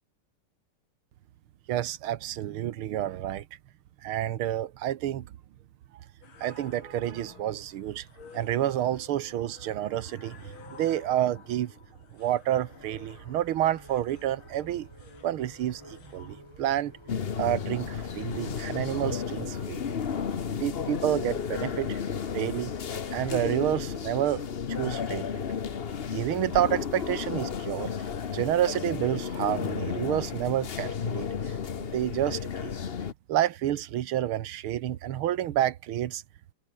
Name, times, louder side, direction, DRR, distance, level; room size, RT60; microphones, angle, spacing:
voice 1, 1.7-3.5 4.0-5.3 6.4-8.1 8.3-10.4 10.7-11.7 12.1-14.9 15.2-16.9 17.4-19.9 20.6-22.0 22.3-22.7 23.1-24.5 24.8-25.4 26.1-27.9 28.3-31.3 31.8-32.8 33.3-36.2, right 12 dB, 75° right, 1.8 m, -29 dB
sound 1, 6.2-23.1, left 6 dB, 70° left, 3.3 m, -53 dB
sound 2, 12.6-22.0, right 1 dB, 10° right, 3.3 m, -52 dB
sound 3, 17.1-33.1, left 7 dB, 45° left, 0.7 m, -33 dB
omnidirectional pair, 2.4 m